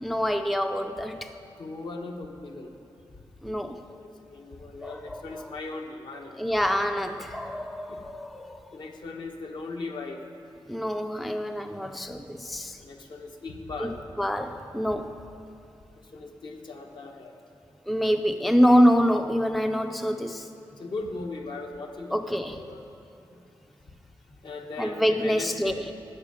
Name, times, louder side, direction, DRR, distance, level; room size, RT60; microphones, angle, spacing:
voice 1, 0.0-1.3 3.4-3.8 4.8-5.4 6.4-8.6 10.7-12.8 13.8-15.2 17.9-20.5 22.1-22.6 24.8-25.9, equal, ahead, 7 dB, 0.4 m, -26 dB
voice 2, 1.6-2.7 3.9-6.4 7.9-8.0 8.7-10.2 12.8-14.0 14.9-15.0 16.1-17.3 20.8-22.8 24.4-25.9, left 3 dB, 60° left, 2 dB, 1.2 m, -38 dB
12.5 x 6.7 x 9.1 m, 2.8 s
wide cardioid pair, 145°, 9 cm